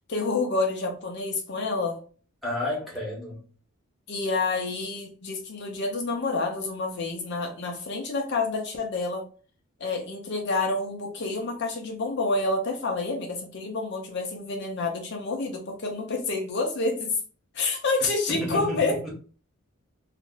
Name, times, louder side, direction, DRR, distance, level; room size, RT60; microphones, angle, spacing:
voice 1, 0.1-2.0 4.1-9.2 9.8-17.1 17.5-19.0, left 3 dB, 50° left, 0.5 m, -28 dB
voice 2, 2.4-3.4 18.3-19.1, left 1 dB, ahead, 0.9 m, -31 dB
2.5 x 2.0 x 3.7 m
head